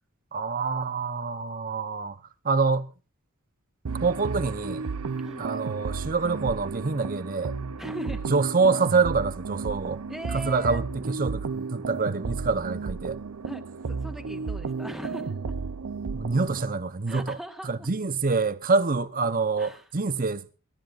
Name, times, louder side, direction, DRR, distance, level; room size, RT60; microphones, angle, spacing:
voice 1, 0.3-2.2 2.4-2.9 4.0-4.8 5.4-7.5 8.3-10.0 10.3-13.2 16.1-17.4 17.6-20.4, right 4 dB, 40° right, 0.8 m, -26 dB
sound 1, 3.9-16.7, right 4 dB, 75° right, 0.6 m, -33 dB
voice 2, 5.2-5.5 7.8-8.2 10.1-10.9 13.4-15.5 17.1-17.9 19.6-19.9, equal, ahead, 1.4 m, -40 dB
26.5 x 12.0 x 2.5 m
head